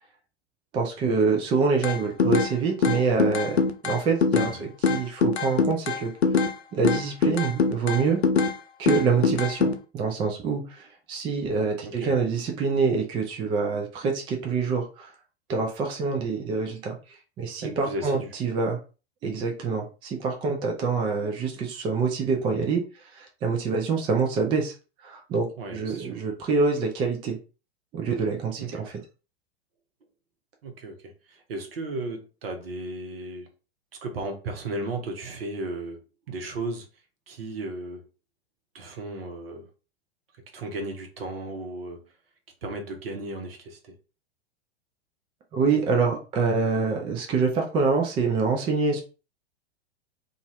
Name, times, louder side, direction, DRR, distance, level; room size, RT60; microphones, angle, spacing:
voice 1, 0.7-6.1 6.7-8.2 8.8-15.1 15.5-17.0 17.4-18.8 19.2-22.8 23.1-24.7 25.0-27.4 27.9-28.9 45.5-49.0, right 4 dB, 15° right, 0.4 m, -26 dB
sound 1, 1.8-2.5 2.8-4.5 4.8-6.5 6.8-8.6 8.9-9.7, left 5 dB, 75° left, 0.6 m, -23 dB
voice 2, 11.8-12.2 17.6-18.3 25.6-26.3 28.6-28.9 30.6-33.5 34.0-36.0 36.3-36.9 37.3-38.0 38.7-39.7 40.5-42.0 42.6-43.9, right 2 dB, 60° right, 1.0 m, -35 dB
2.5 x 2.4 x 3.0 m
figure-of-eight pair, 95°, 33 cm